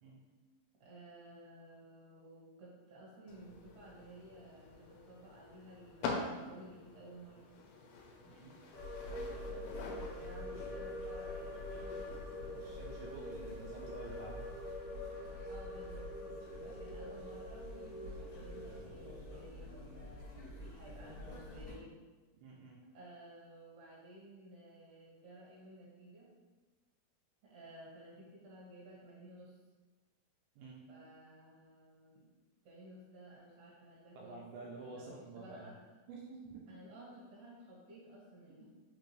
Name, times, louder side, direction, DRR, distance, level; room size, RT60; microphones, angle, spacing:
voice 1, 0.8-7.5 9.0-12.2 15.5-16.1 16.6-21.9 22.9-26.3 27.4-29.5 30.9-32.3 32.6-34.4 34.8-35.7 36.7-38.7, right 1 dB, 60° right, -6 dB, 2.7 m, -55 dB
sound 1, 3.3-14.8, left 3 dB, 80° left, 2.3 m, -47 dB
voice 2, 8.2-8.6 9.2-9.3 12.5-14.5 16.6-16.8 22.3-22.8 30.6-30.8 34.2-35.7 36.1-36.7 38.6-38.7, right 3 dB, 85° right, -3 dB, 2.5 m, -50 dB
sound 2, 8.7-21.7, left 1 dB, 65° left, 1.6 m, -45 dB
5.7 x 2.6 x 3.1 m, 1.3 s
omnidirectional pair, 4.4 m